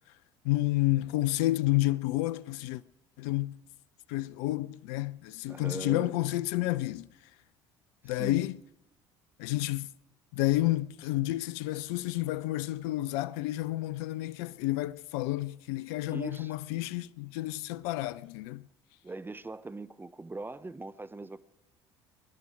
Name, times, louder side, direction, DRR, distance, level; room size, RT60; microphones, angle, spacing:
voice 1, 0.4-2.8 3.2-3.6 4.1-7.1 8.0-8.6 9.4-9.9 10.3-18.7, left 17 dB, 65° left, 0.6 m, -30 dB
voice 2, 5.5-6.2 8.0-8.4 16.1-16.5 19.0-21.4, right 3 dB, 15° right, 0.8 m, -41 dB
25.5 x 11.0 x 4.9 m
figure-of-eight pair, 60°, 14 cm